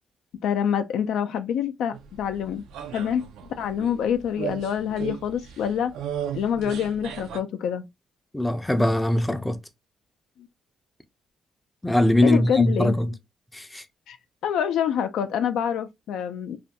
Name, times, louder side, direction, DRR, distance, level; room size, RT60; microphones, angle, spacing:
voice 1, 0.4-2.6 2.9-3.2 3.6-5.9 6.3-7.9 12.2-13.0 14.1-14.2 14.4-16.6, left 8 dB, 80° left, 0.3 m, -26 dB
sound 1, 1.9-7.4, right 9 dB, 90° right, 0.3 m, -36 dB
voice 2, 8.3-9.6 11.8-13.1 13.5-13.8, left 1 dB, 10° left, 0.4 m, -21 dB
2.4 x 2.2 x 2.7 m
cardioid pair, 90°, 0 cm